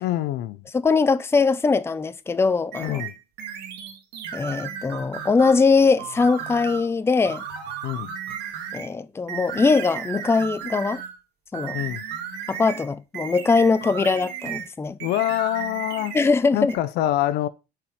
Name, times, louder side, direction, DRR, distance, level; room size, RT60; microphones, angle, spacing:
voice 1, 0.0-0.6 2.8-3.1 7.8-8.1 11.7-12.0 15.0-16.2 16.5-17.5, left 13 dB, 80° left, 0.6 m, -25 dB
voice 2, 0.7-3.0 4.3-7.4 8.7-11.0 11.5-11.8 12.5-15.0 16.1-16.7, left 4 dB, 15° left, 0.5 m, -21 dB
sound 1, 2.7-5.6 6.0-6.9 7.2-8.9 9.3-11.2 11.5-14.7 15.0-16.3 16.7-16.8, right 8 dB, 85° right, 1.5 m, -35 dB
5.9 x 4.4 x 4.8 m
cardioid pair, 110°, 17 cm